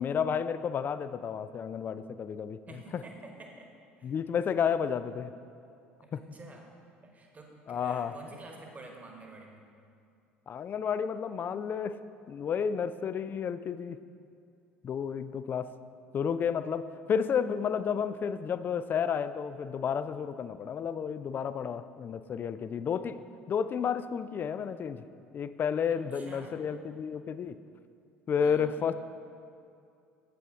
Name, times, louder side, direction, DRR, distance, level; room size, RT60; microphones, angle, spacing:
voice 1, 0.0-2.6 2.9-3.0 4.0-5.3 6.1-6.2 7.7-8.1 10.5-12.0 12.3-14.0 14.8-15.7 16.1-23.2 23.5-25.1 25.3-27.6 28.3-28.9, left 7 dB, 30° left, 13 dB, 0.3 m, -31 dB
voice 2, 2.7-3.7 4.0-4.1 6.0-6.7 7.0-9.6 26.1-26.6 28.4-28.6, right 2 dB, 25° right, 2 dB, 1.3 m, -49 dB
8.3 x 8.1 x 3.7 m, 2.5 s
figure-of-eight pair, 60°, 6 cm